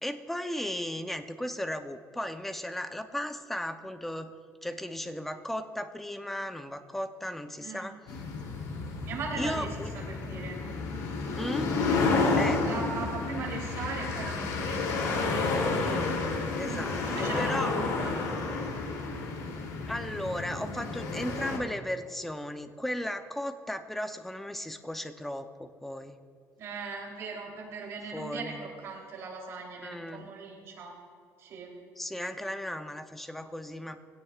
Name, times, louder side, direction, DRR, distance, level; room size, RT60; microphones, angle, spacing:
voice 1, 0.0-4.3 4.6-8.0 9.4-9.9 11.4-11.7 12.4-12.7 15.7-16.2 16.6-17.7 19.9-26.2 28.1-28.7 29.8-30.3 32.0-34.0, left 1 dB, 5° left, 7 dB, 0.7 m, -36 dB
sound 1, 8.1-21.6, left 3 dB, 85° left, 3.0 m, -31 dB
voice 2, 9.0-9.7 9.9-10.6 12.6-15.2 16.6-18.1 26.6-30.9 31.4-31.7, right 4 dB, 50° right, -1 dB, 3.4 m, -39 dB
22.0 x 16.5 x 2.5 m, 2.1 s
cardioid pair, 170°, 6 cm